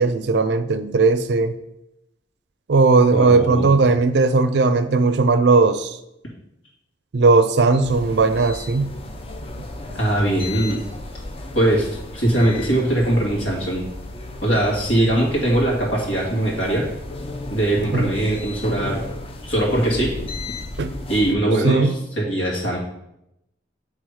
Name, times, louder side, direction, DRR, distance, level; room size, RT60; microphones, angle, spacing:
voice 1, 0.0-1.5 2.7-6.0 7.1-8.9 17.9-18.1 20.8-20.9 21.6-21.9, right 3 dB, 60° right, 0.4 m, -17 dB
voice 2, 3.1-3.7 10.0-10.8 11.5-13.9 14.4-16.9 17.5-19.0 19.4-20.1 21.1-22.8, right 1 dB, 90° left, 2.1 m, -21 dB
sound 1, 7.8-21.4, left 2 dB, 30° left, 0.5 m, -34 dB
7.9 x 3.4 x 4.8 m
head